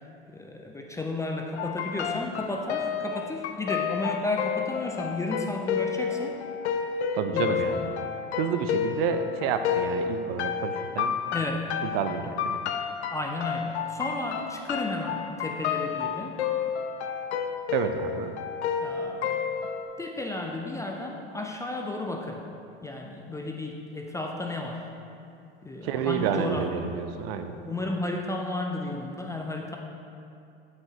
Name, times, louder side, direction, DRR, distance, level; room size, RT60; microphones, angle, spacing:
voice 1, 0.3-6.4 7.3-7.8 11.3-11.7 13.1-16.4 18.8-19.5 20.0-22.4 22.8-24.9 25.6-27.0 27.6-29.8, left 2 dB, 10° left, 1 dB, 0.4 m, -33 dB
sound 1, 1.6-19.8, left 7 dB, 85° left, 0.5 m, -30 dB
voice 2, 7.1-7.8 8.4-11.2 11.8-12.6 17.7-18.4 25.8-27.6, right 7 dB, 65° right, 8 dB, 0.5 m, -29 dB
7.9 x 5.1 x 2.8 m, 2.6 s
hypercardioid pair, 95°, 33 cm